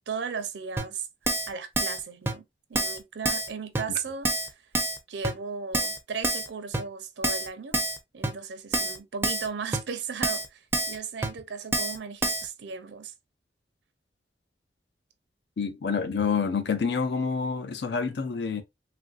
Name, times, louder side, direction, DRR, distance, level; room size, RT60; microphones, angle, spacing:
voice 1, 0.1-1.1 1.5-2.4 2.7-4.7 5.1-7.8 8.1-13.1, right 6 dB, 85° right, 0.5 m, -36 dB
Keyboard (musical), 0.8-0.9 1.3-1.5 1.8-2.0 2.3-2.4 2.8-3.0 3.3-3.5 3.8-3.9 4.2-4.5 4.7-5.0 5.2-5.3 5.7-6.0 6.2-6.5 6.7-6.8 7.2-7.5 7.7-8.0 8.2-8.3 8.7-9.0 9.2-9.5 9.7-9.8 10.2-10.5 10.7-11.0 11.2-11.3 11.7-12.0 12.2-12.4, right 2 dB, 15° right, 0.4 m, -27 dB
voice 2, 15.6-18.6, left 5 dB, 70° left, 0.5 m, -28 dB
3.1 x 2.5 x 2.3 m
head